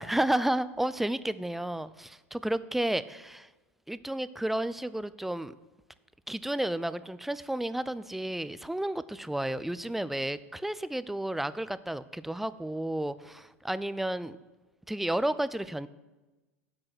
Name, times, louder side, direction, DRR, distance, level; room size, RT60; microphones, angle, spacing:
voice 1, 0.0-3.5 3.9-5.5 6.3-14.4 14.9-15.9, right 1 dB, 5° right, 16 dB, 0.5 m, -32 dB
10.5 x 7.7 x 7.8 m, 1.1 s
figure-of-eight pair, 90°, 8 cm